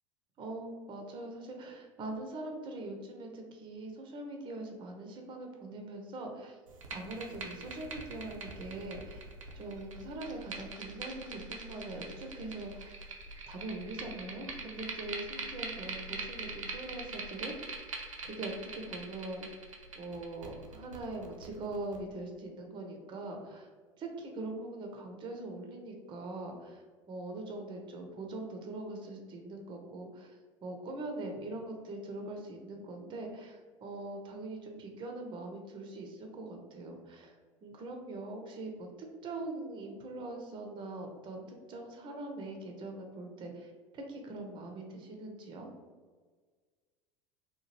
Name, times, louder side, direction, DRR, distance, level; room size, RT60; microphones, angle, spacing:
voice 1, 0.4-6.6 6.9-9.2 9.5-12.9 13.5-17.8 18.2-19.5 20.0-23.7 24.0-26.8 27.1-30.3 30.6-37.3 37.6-38.9 39.2-41.4 41.7-45.7, right 2 dB, 30° right, 2 dB, 0.5 m, -42 dB
sound 1, 6.7-22.0, right 3 dB, 85° right, 0.4 m, -43 dB
2.8 x 2.2 x 2.9 m, 1.5 s
figure-of-eight pair, 75°, 16 cm